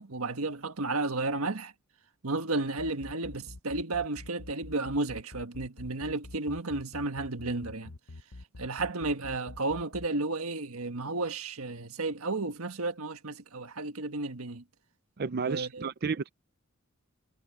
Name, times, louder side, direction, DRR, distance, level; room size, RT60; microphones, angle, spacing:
voice 1, 0.0-1.7 2.2-7.9 8.6-14.6 15.3-15.9, right 2 dB, 90° right, 1.5 m, -33 dB
sound 1, 2.8-10.1, left 2 dB, 70° left, 1.0 m, -45 dB
voice 2, 15.2-16.3, right 5 dB, 50° right, 0.5 m, -32 dB
head